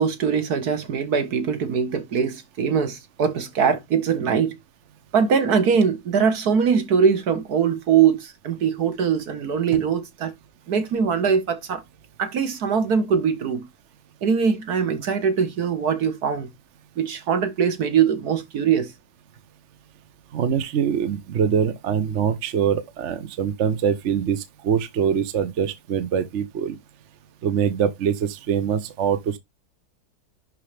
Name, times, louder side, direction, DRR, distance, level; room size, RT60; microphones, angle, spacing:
voice 1, 0.0-4.6 5.1-10.3 10.7-11.8 12.2-13.7 14.2-16.5 17.0-18.9, right 6 dB, 70° right, 1.9 m, -22 dB
voice 2, 20.3-26.8 27.4-29.4, right 7 dB, 55° right, 1.0 m, -23 dB
11.0 x 4.6 x 3.3 m
omnidirectional pair, 1.7 m